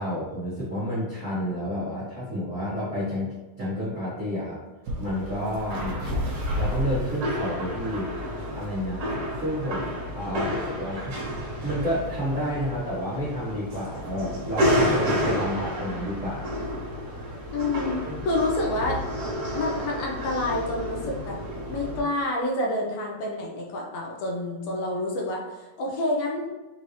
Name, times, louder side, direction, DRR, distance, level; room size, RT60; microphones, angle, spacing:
voice 1, 0.0-4.6 5.0-6.2 6.5-8.1 8.5-9.0 9.4-11.2 11.6-16.6 18.0-18.2, equal, 85° right, -10 dB, 0.6 m, -30 dB
sound 1, 4.9-22.0, equal, 50° right, 1.9 m, -30 dB
voice 2, 17.5-19.2 19.5-21.4 21.7-26.5, left 2 dB, 75° left, -1 dB, 1.8 m, -28 dB
5.4 x 2.7 x 3.1 m, 1.2 s
omnidirectional pair, 3.5 m